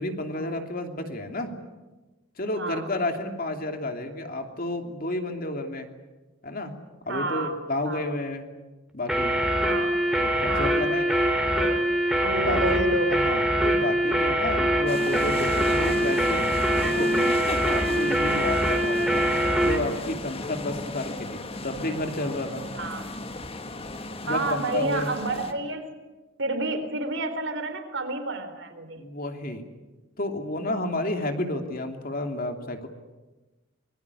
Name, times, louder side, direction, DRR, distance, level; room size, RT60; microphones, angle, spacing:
voice 1, 0.0-1.5 2.4-5.9 6.4-6.7 7.0-8.5 8.9-9.4 10.2-11.2 12.4-12.8 13.1-16.5 16.8-17.2 17.7-19.3 19.6-22.6 24.2-25.1 29.0-29.6 30.2-32.9, left 1 dB, 45° left, 5 dB, 2.9 m, -31 dB
voice 2, 2.6-2.9 7.1-7.5 7.8-8.0 9.6-10.0 10.5-10.8 11.5-11.8 12.2-13.3 18.2-18.5 22.7-23.1 24.2-25.9 26.4-29.0, right 2 dB, 60° right, 8 dB, 3.9 m, -30 dB
sound 1, 9.1-19.8, right 1 dB, ahead, 3.5 m, -23 dB
sound 2, 14.9-25.5, left 2 dB, 30° left, 1.7 m, -35 dB
25.5 x 22.0 x 9.9 m, 1.2 s
head